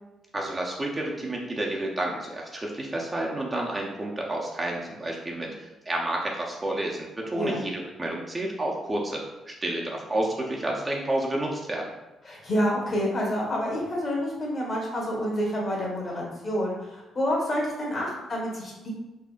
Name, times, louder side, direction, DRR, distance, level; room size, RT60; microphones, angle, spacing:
voice 1, 0.3-11.8, right 1 dB, 20° right, -2 dB, 0.6 m, -30 dB
voice 2, 12.2-18.9, equal, 40° left, -3 dB, 1.5 m, -28 dB
3.7 x 3.2 x 2.5 m, 1.0 s
cardioid pair, 90°, 0 cm